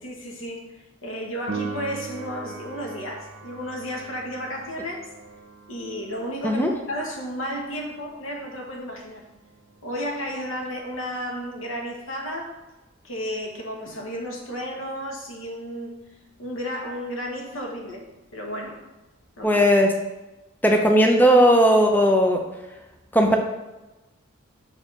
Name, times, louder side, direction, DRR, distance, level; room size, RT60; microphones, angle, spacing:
voice 1, 0.0-5.1 5.7-9.3 9.8-12.6 13.0-16.0 16.4-18.1 18.3-18.9 19.4-19.6, equal, 90° left, 1 dB, 1.3 m, -33 dB
Piano, 1.5-11.9 19.4-19.5, right 4 dB, 60° right, 0.9 m, -41 dB
voice 2, 19.4-19.9 20.6-22.4 23.1-23.4, equal, 10° left, 3 dB, 0.5 m, -17 dB
5.6 x 4.7 x 5.5 m, 1.1 s
head